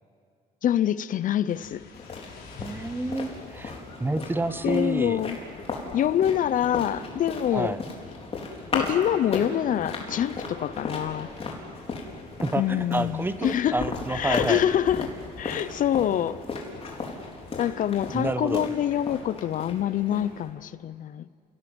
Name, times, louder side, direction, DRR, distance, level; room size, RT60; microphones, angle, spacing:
voice 1, 0.6-1.8 4.6-5.4 5.9-7.8 8.7-11.3 12.6-13.8 14.1-15.1 15.4-16.4 17.6-21.3, left 10 dB, 50° left, 0.6 m, -25 dB
sound 1, 1.5-14.8, left 5 dB, 70° left, 6.0 m, -52 dB
sound 2, 1.9-20.5, left 3 dB, 35° left, 4.5 m, -36 dB
voice 2, 2.6-5.2 7.5-7.8 12.4-14.6 18.1-18.7, right 2 dB, 10° right, 0.9 m, -29 dB
30.0 x 17.5 x 8.0 m
cardioid pair, 110°, 17 cm